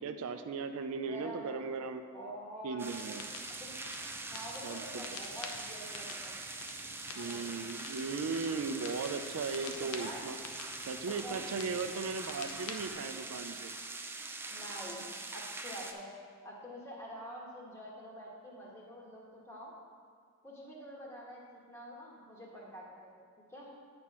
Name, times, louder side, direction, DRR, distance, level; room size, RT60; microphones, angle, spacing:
voice 1, 0.0-2.1 2.6-3.2 4.6-5.1 7.2-10.4 10.8-13.7 15.0-15.1, right 4 dB, 75° right, 8 dB, 0.4 m, -37 dB
voice 2, 1.1-1.6 2.1-2.8 3.6-3.8 4.3-6.4 7.1-7.6 9.8-10.2 11.2-11.5 14.5-15.0 15.3-16.0 16.4-19.7 20.4-23.2 23.5-23.7, equal, 10° left, -4 dB, 1.3 m, -46 dB
sound 1, 2.8-15.9, right 3 dB, 10° right, 0.4 m, -43 dB
sound 2, 2.9-12.9, left 4 dB, 80° left, 0.7 m, -49 dB
8.6 x 4.2 x 6.0 m, 2.1 s
head